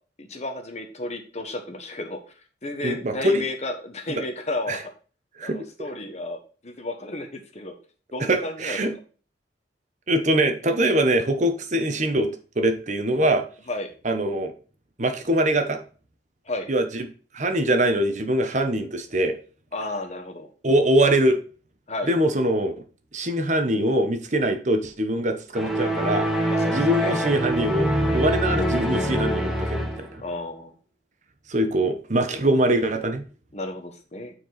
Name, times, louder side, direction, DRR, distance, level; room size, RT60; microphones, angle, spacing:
voice 1, 0.2-2.2 2.6-4.8 5.4-6.4 6.6-7.7 8.1-8.8 13.7-13.9 16.5-16.7 19.7-20.5 21.9-22.1 26.5-27.2 30.2-30.7 33.5-34.3, left 2 dB, 40° left, 5 dB, 1.4 m, -32 dB
voice 2, 2.8-3.4 4.7-4.8 5.4-5.6 8.2-8.9 10.1-12.3 12.6-13.4 14.0-14.5 15.0-15.8 16.7-17.1 17.3-19.3 20.6-21.4 22.1-22.8 23.1-26.3 26.7-30.2 31.5-33.2, right 1 dB, 40° right, 6 dB, 1.0 m, -23 dB
sound 1, 25.5-30.2, equal, ahead, 1.1 m, -24 dB
9.0 x 4.7 x 4.1 m, 0.38 s
head